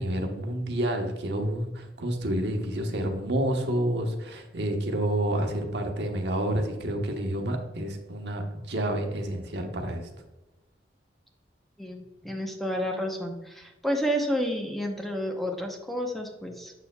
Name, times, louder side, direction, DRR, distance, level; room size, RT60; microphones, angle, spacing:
voice 1, 0.0-10.1, right 1 dB, 75° right, 3 dB, 1.1 m, -29 dB
voice 2, 11.8-16.7, equal, ahead, 2 dB, 0.7 m, -30 dB
7.0 x 6.7 x 2.2 m, 1.0 s
head